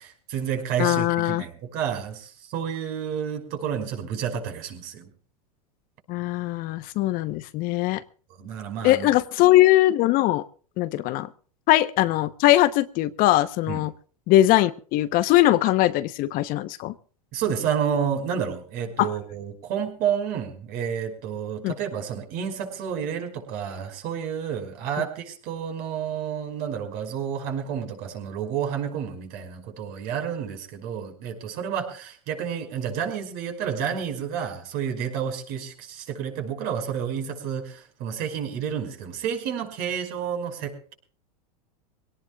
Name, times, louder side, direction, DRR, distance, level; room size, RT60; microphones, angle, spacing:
voice 1, 0.0-5.1 8.4-9.1 13.7-13.9 17.3-40.9, right 8 dB, 50° right, 5 dB, 5.3 m, -30 dB
voice 2, 0.8-1.4 6.1-8.0 8.8-10.4 10.8-11.3 11.7-13.9 14.3-16.9 19.0-19.1 21.6-21.7, left 15 dB, 45° left, 13 dB, 1.0 m, -21 dB
23.5 x 18.0 x 2.4 m, 0.40 s
hypercardioid pair, 115°, 20 cm